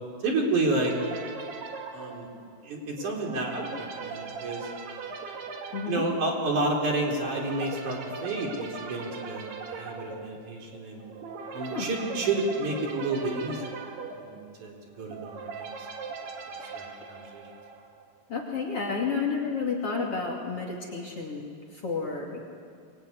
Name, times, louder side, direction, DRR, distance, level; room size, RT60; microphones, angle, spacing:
voice 1, 0.2-0.9 1.9-2.3 2.6-4.7 5.9-11.0 11.5-13.7 14.2-15.6 16.7-17.4, right 2 dB, 50° right, 0 dB, 4.9 m, -30 dB
sound 1, 0.9-18.0, right 5 dB, 90° right, 4.3 m, -40 dB
voice 2, 5.7-6.0 11.6-12.0 16.5-16.8 18.3-22.4, left 4 dB, 40° left, -1 dB, 3.2 m, -31 dB
24.5 x 24.0 x 9.7 m, 2.2 s
omnidirectional pair, 4.5 m